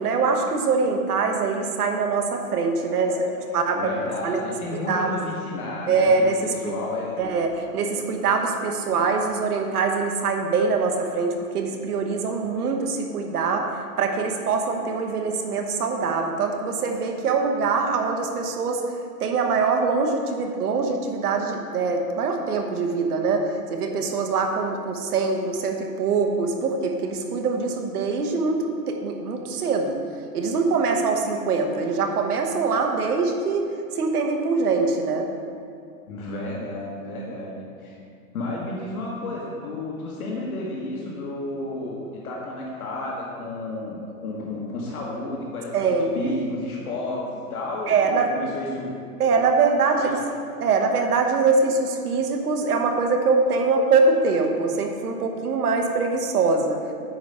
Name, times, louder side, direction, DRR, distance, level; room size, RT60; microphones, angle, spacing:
voice 1, 0.0-3.1 3.5-3.9 4.2-4.4 4.9-5.1 5.9-6.7 7.2-13.7 14.0-18.8 19.2-30.0 30.3-33.7 33.9-35.3 45.7-46.4 47.9-48.3 49.2-50.2 50.6-56.8, right 4 dB, 70° right, 3 dB, 1.2 m, -23 dB
voice 2, 3.1-6.3 6.6-7.2 36.1-37.9 38.3-48.9 49.9-50.1, left 2 dB, 65° left, -4 dB, 1.6 m, -32 dB
9.4 x 4.8 x 5.5 m, 2.3 s
hypercardioid pair, 180°, 47 cm